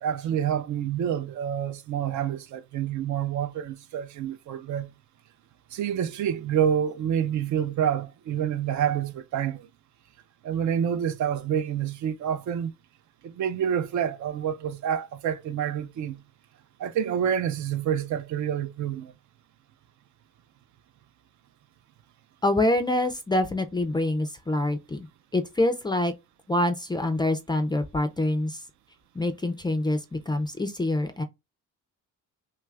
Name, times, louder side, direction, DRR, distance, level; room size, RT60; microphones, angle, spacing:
voice 1, 0.0-4.9 5.7-9.7 10.4-12.7 13.2-16.2 16.8-19.1, right 9 dB, 60° right, 0.4 m, -28 dB
voice 2, 22.4-25.1 25.3-26.1 26.5-28.6 29.2-31.2, left 1 dB, 15° left, 0.3 m, -26 dB
3.2 x 2.4 x 3.1 m
cardioid pair, 140°, 33 cm